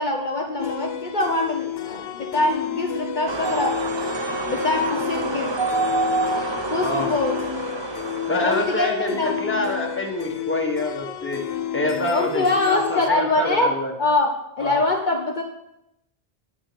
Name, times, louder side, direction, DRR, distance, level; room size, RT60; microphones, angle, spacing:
voice 1, 0.0-3.8 4.5-5.5 6.7-7.4 8.4-9.4 12.1-13.7 14.0-14.3 14.6-15.4, left 2 dB, 50° left, 1 dB, 1.1 m, -23 dB
sound 1, 0.6-13.1, left 10 dB, 75° left, 0.9 m, -31 dB
sound 2, 3.3-8.8, right 2 dB, 30° right, 0.6 m, -27 dB
voice 2, 6.8-7.1 8.3-11.4 11.7-13.9 14.6-14.8, left 2 dB, 10° left, 1 dB, 1.4 m, -26 dB
9.5 x 8.8 x 5.2 m, 0.84 s
omnidirectional pair, 1.0 m